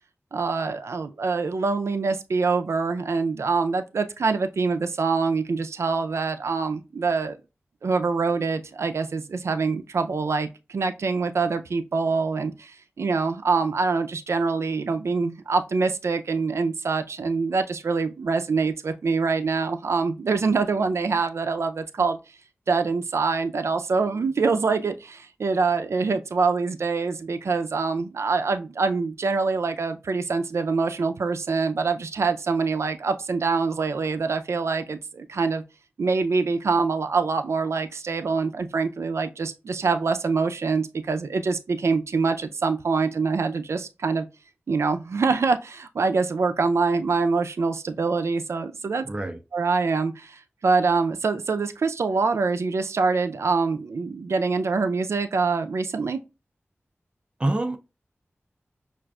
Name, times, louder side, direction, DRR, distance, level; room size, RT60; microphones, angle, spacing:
voice 1, 0.3-7.4 7.8-22.2 22.7-35.6 36.0-44.3 44.7-49.1 49.5-56.2, right 4 dB, 85° right, 0.4 m, -25 dB
voice 2, 49.0-49.4 57.4-57.8, right 2 dB, 25° right, 0.4 m, -26 dB
5.9 x 2.5 x 2.3 m
wide cardioid pair, 90°, 5 cm